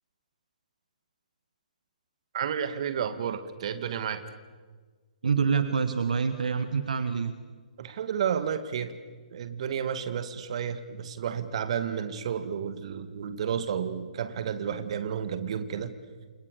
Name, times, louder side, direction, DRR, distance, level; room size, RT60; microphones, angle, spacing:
voice 1, 2.3-4.2 7.8-8.9 9.3-15.9, right 8 dB, 45° right, 10 dB, 2.3 m, -31 dB
voice 2, 5.2-7.3, right 6 dB, 65° right, 10 dB, 1.7 m, -26 dB
29.5 x 27.0 x 6.8 m, 1.5 s
figure-of-eight pair, 130°, 4 cm